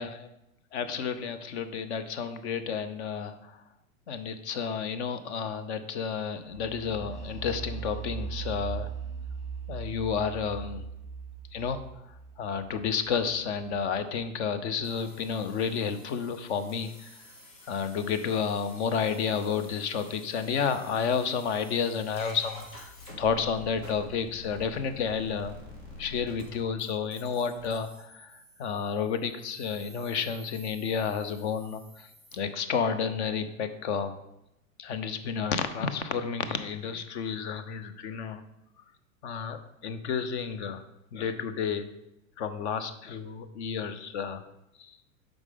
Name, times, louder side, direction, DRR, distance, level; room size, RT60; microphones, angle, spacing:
voice 1, 0.7-3.6 4.1-8.9 9.7-10.9 11.5-11.8 12.4-17.1 17.7-25.5 26.0-32.1 32.3-34.1 34.8-38.4 39.2-40.8 41.1-41.9 42.4-44.4 44.8-44.9, left 6 dB, 55° left, 11 dB, 0.8 m, -31 dB
sound 1, 6.5-14.2, right 5 dB, 25° left, 1.8 m, -39 dB
sound 2, 14.8-32.3, left 2 dB, 75° left, 2.3 m, -49 dB
8.1 x 5.1 x 3.6 m, 0.86 s
figure-of-eight pair, 90°, 42 cm